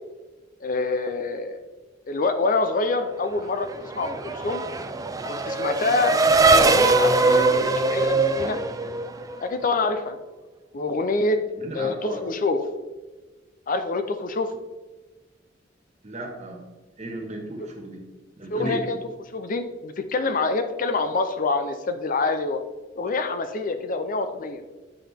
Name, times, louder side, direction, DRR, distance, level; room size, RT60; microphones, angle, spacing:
voice 1, 0.6-1.6 2.1-3.7 3.9-4.6 5.2-6.1 6.5-8.6 9.4-10.2 10.7-11.4 11.7-12.6 13.7-14.5 18.5-19.0 19.3-22.6 23.0-24.6, left 3 dB, 45° left, 9 dB, 0.5 m, -26 dB
Race car auto racing / Accelerating revving vroom, 3.4-9.5, right 3 dB, 20° right, 0.4 m, -21 dB
voice 2, 11.5-12.3 16.0-16.6 17.0-18.1 18.4-18.9, right 1 dB, 40° right, 1 dB, 1.6 m, -34 dB
9.1 x 5.7 x 3.5 m, 1.2 s
head